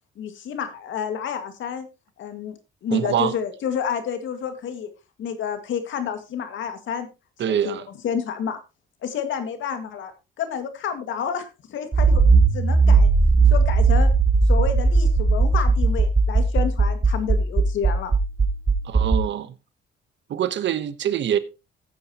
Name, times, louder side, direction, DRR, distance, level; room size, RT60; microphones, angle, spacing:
voice 1, 0.2-1.9 2.2-2.6 2.8-4.9 5.2-7.1 7.5-7.8 8.0-8.6 9.0-10.1 10.4-12.2 12.5-13.1 13.5-14.1 14.5-18.1, left 7 dB, 75° left, 2.0 m, -29 dB
voice 2, 2.9-3.3 7.4-7.9 18.8-19.5 20.3-21.4, right 10 dB, 65° right, 1.1 m, -24 dB
Accelerating revving vroom, 11.9-19.2, right 4 dB, 25° right, 1.5 m, -18 dB
14.5 x 8.9 x 2.9 m
cardioid pair, 90°, 20 cm